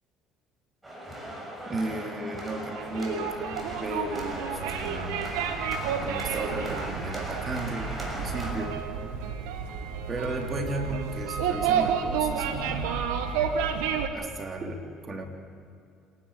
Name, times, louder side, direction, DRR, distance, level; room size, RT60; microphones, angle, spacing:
sound 1, 0.8-8.5, equal, 15° right, 6.7 m, -38 dB
voice 1, 1.7-3.5 3.8-5.2 6.0-8.8 10.1-13.0 14.1-15.2, right 2 dB, 35° right, 3 dB, 3.2 m, -34 dB
sound 2, 2.7-14.1, right 7 dB, 85° right, 1.5 m, -30 dB
26.5 x 11.5 x 8.8 m, 2.5 s
supercardioid pair, 75°, 0 cm